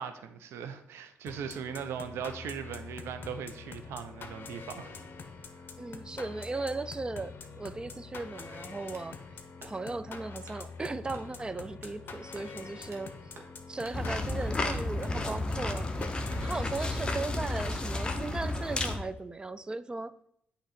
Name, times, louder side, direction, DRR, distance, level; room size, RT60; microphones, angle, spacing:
voice 1, 0.0-5.0, right 7 dB, 85° right, 0.5 m, -39 dB
sound 1, 1.3-17.6, left 4 dB, 55° left, 0.7 m, -45 dB
voice 2, 5.8-9.2 9.6-13.1 13.7-16.1 16.4-20.1, right 3 dB, 20° right, 0.3 m, -37 dB
sound 2, 8.4-9.1 9.6-10.0 10.4-10.6 11.1-11.3 11.8-12.0 12.3-13.1 13.3-13.6 13.8-14.0 14.4-14.9 15.3-15.8 16.3-17.0, right 2 dB, 65° right, 1.3 m, -52 dB
sound 3, 13.9-19.0, left 2 dB, 20° left, 0.7 m, -32 dB
8.1 x 2.9 x 4.2 m
cardioid pair, 90°, 4 cm